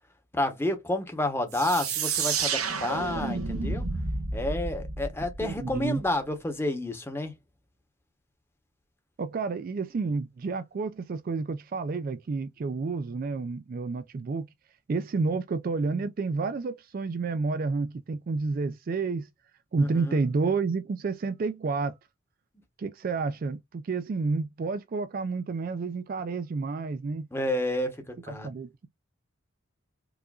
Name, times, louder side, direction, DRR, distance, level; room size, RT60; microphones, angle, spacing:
voice 1, 0.3-3.8 4.3-7.3 19.8-20.2 27.3-28.5, left 1 dB, 10° left, 0.8 m, -30 dB
sound 1, 1.5-6.1, right 4 dB, 90° right, 1.0 m, -31 dB
voice 2, 5.4-6.0 9.2-14.5 14.9-19.3 19.7-21.9 22.8-27.3 28.3-28.9, right 4 dB, 45° right, 0.3 m, -30 dB
4.7 x 2.5 x 2.3 m
head